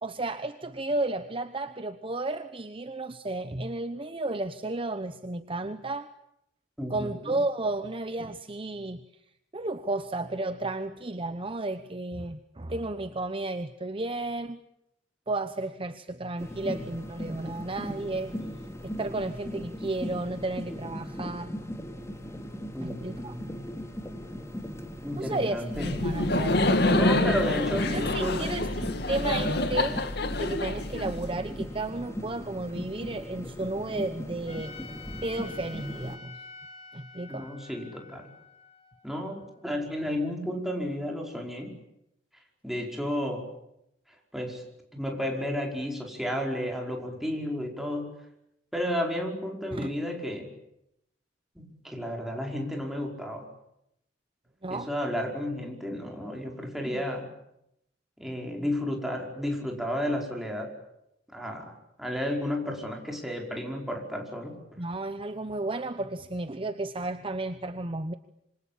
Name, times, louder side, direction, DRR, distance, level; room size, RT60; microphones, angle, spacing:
voice 1, 0.0-6.1 6.9-9.1 9.5-14.7 15.3-18.3 18.8-21.5 22.8-23.4 25.2-27.4 27.9-34.7 35.2-36.3 36.9-37.5 49.7-49.9 54.6-54.9 56.8-57.0 64.8-68.1, right 2 dB, 30° right, 10 dB, 1.0 m, -33 dB
voice 2, 6.8-7.3 22.7-23.5 25.0-25.9 26.9-28.5 37.3-38.3 39.0-41.8 42.6-43.5 44.3-44.6 44.9-48.2 48.7-50.5 51.6-53.4 54.7-57.3 58.2-60.7 61.3-64.6, equal, ahead, 0 dB, 5.2 m, -32 dB
sound 1, 16.4-36.2, equal, 15° left, 2.9 m, -38 dB
Laughter, 25.7-31.6, left 2 dB, 60° left, 2.2 m, -27 dB
Trumpet, 34.5-39.7, left 4 dB, 35° left, 3.9 m, -48 dB
26.5 x 25.5 x 8.7 m, 0.82 s
head